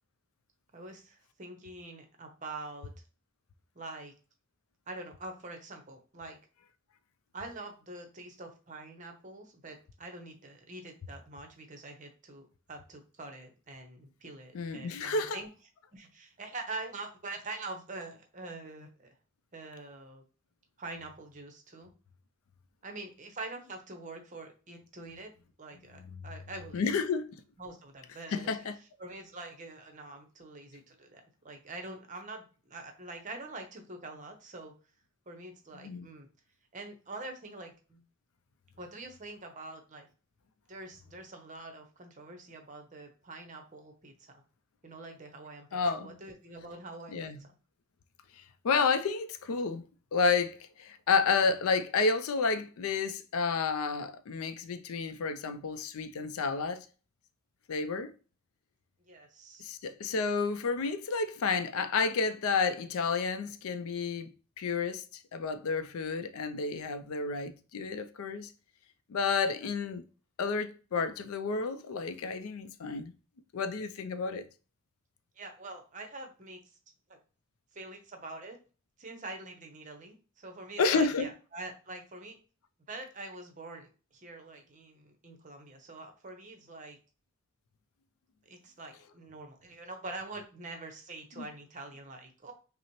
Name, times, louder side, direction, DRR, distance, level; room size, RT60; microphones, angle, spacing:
voice 1, 0.7-2.9 3.7-4.1 4.9-6.4 7.3-15.5 15.9-19.1 19.5-20.2 20.8-21.9 22.8-25.3 25.6-26.8 27.6-28.7 29.0-34.7 35.3-36.3 36.7-38.0 38.8-40.1 40.7-44.4 44.8-47.5 59.1-59.7 75.4-76.6 77.7-78.6 79.0-82.4 82.9-87.0 88.5-92.5, right 2 dB, 35° right, 0.7 m, -45 dB
voice 2, 14.5-15.4 26.7-27.3 28.3-28.7 35.8-36.1 45.7-46.1 47.1-47.4 48.4-49.8 50.1-56.9 57.7-58.1 59.6-64.3 64.6-68.5 69.1-70.0 70.4-73.1 73.5-74.4 80.8-81.3 91.4-91.5, left 4 dB, 80° left, 0.4 m, -30 dB
5.5 x 2.0 x 2.9 m
head